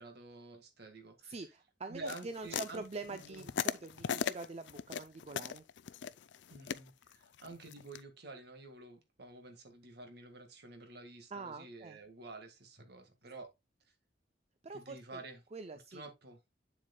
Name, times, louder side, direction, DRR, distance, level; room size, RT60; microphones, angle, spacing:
voice 1, 0.0-1.4 1.9-3.5 6.5-13.5 14.7-15.4 15.9-16.4, right 2 dB, 65° right, 1.8 m, -50 dB
voice 2, 1.2-5.7 11.3-12.0 14.6-15.2 15.5-16.1, right 3 dB, 35° right, 0.5 m, -45 dB
sound 1, 2.1-8.0, left 7 dB, 75° left, 0.4 m, -38 dB
8.0 x 7.5 x 2.3 m
head